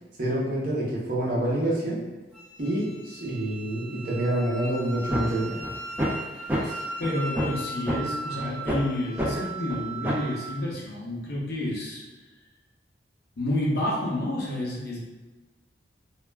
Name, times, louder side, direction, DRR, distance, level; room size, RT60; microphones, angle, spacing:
voice 1, 0.2-2.0 2.6-5.6, right 1 dB, 50° right, -4 dB, 0.7 m, -27 dB
Wind instrument woodwind instrument, 2.3-10.5, right 2 dB, 5° left, 0.8 m, -38 dB
sound 1, 5.1-5.2 5.6-5.7 6.0-6.2 6.5-6.6 7.0-7.1 7.4-7.6 7.9-8.0 8.4-8.8 9.2-9.3 9.7-9.8 10.0-10.3, equal, 10° right, 0.5 m, -26 dB
voice 2, 6.6-12.0 13.4-15.0, left 1 dB, 60° left, -4 dB, 0.7 m, -30 dB
2.3 x 2.1 x 3.3 m, 1.2 s
head